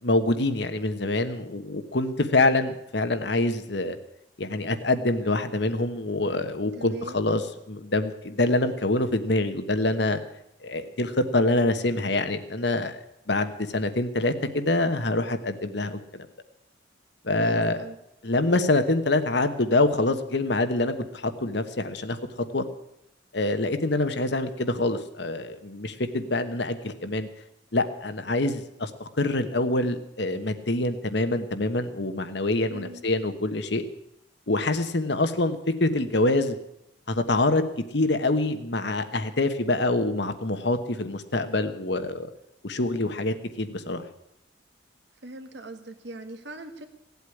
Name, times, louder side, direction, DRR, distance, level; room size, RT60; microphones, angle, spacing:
voice 1, 0.0-4.0 4.4-7.4 7.7-10.2 10.6-13.0 13.3-16.3 17.2-17.8 18.2-22.2 22.5-22.6 23.3-27.3 27.7-33.8 34.5-36.6 37.1-37.6 37.9-42.3 42.6-44.0, left 2 dB, 60° left, 9 dB, 1.2 m, -25 dB
voice 2, 6.8-7.3 17.4-18.0 32.7-33.0 45.2-46.9, right 1 dB, 60° right, 7 dB, 1.6 m, -40 dB
17.0 x 8.3 x 9.8 m, 0.81 s
head